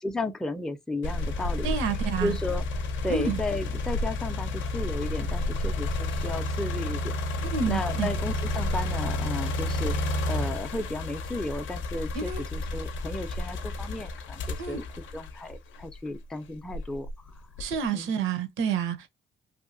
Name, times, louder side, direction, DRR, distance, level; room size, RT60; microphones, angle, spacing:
voice 1, 0.0-1.8 2.2-2.6 3.0-7.1 7.7-10.0 10.2-14.8 15.1-17.3 17.9-18.1, left 2 dB, 5° left, 0.4 m, -34 dB
sound 1, 1.0-16.1 16.7-17.9, left 2 dB, 75° left, 0.6 m, -31 dB
voice 2, 1.6-2.4 3.1-3.4 7.5-8.2 12.1-12.4 14.6-14.8 17.6-19.1, right 6 dB, 90° right, 0.8 m, -29 dB
2.7 x 2.5 x 2.4 m
cardioid pair, 90°, 20 cm